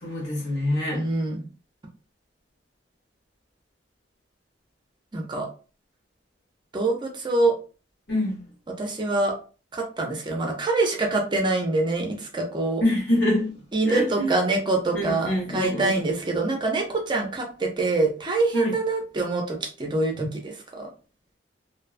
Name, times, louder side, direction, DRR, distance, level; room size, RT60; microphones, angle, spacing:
voice 1, 0.0-1.1 8.1-8.5 12.8-13.5 13.8-14.3 14.9-16.0 18.5-18.7, left 1 dB, 70° left, 1.2 m, -25 dB
voice 2, 0.9-1.5 5.1-5.5 6.7-7.5 8.8-9.3 9.7-12.8 13.7-20.9, right 2 dB, 25° right, 0.5 m, -25 dB
2.6 x 2.2 x 2.4 m
head